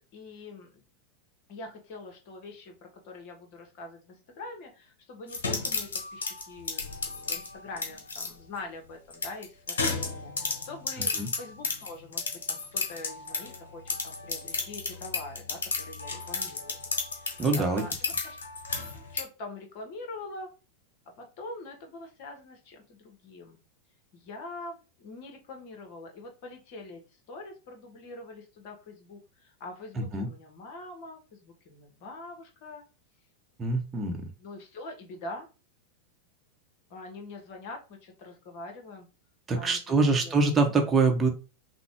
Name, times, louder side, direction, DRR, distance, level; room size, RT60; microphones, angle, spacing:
voice 1, 0.1-0.8 1.5-2.7 3.0-16.8 17.1-18.4 19.1-20.5 21.2-23.6 24.1-27.0 27.3-32.8 34.4-35.5 36.9-39.1 39.5-39.8 40.1-40.4, left 2 dB, 45° left, 4 dB, 1.5 m, -44 dB
sound 1, 5.3-8.3 9.1-13.6 13.9-19.2, left 4 dB, 65° left, 1.1 m, -33 dB
voice 2, 17.4-17.8 30.0-30.3 33.6-34.2 39.5-41.3, right 3 dB, 15° right, 2 dB, 1.1 m, -24 dB
6.0 x 2.4 x 3.5 m, 0.31 s
figure-of-eight pair, 90°, 0 cm